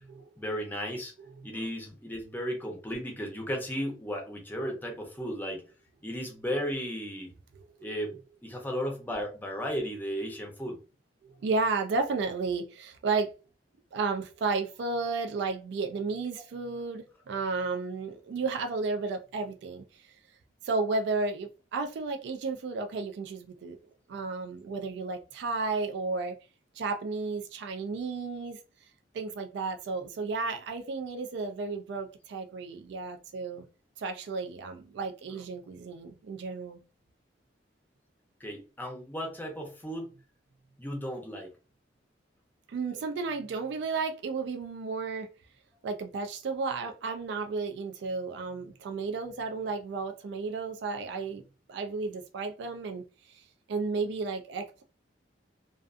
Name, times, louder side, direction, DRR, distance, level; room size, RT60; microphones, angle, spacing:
voice 1, 0.4-1.1 1.4-5.6 6.0-7.3 7.8-10.8 38.4-40.1 40.8-41.5, equal, 10° left, 0.6 m, -35 dB
voice 2, 11.4-13.3 13.9-20.1 20.6-23.8 24.1-26.4 26.7-28.9 29.1-33.6 34.0-36.8 42.7-45.3 45.8-51.4 51.7-54.8, right 4 dB, 70° right, 0.3 m, -33 dB
2.4 x 2.4 x 2.4 m
head